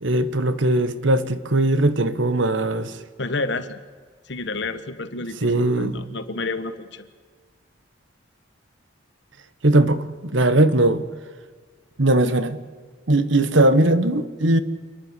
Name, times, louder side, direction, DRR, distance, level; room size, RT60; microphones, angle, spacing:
voice 1, 0.0-2.9 5.4-6.1 9.6-10.0 10.3-11.0 12.0-12.6 13.1-14.6, right 1 dB, 65° right, 13 dB, 1.2 m, -19 dB
voice 2, 3.2-3.8 4.3-7.1, left 3 dB, 60° left, 11 dB, 1.4 m, -30 dB
28.5 x 11.0 x 8.4 m, 1.5 s
head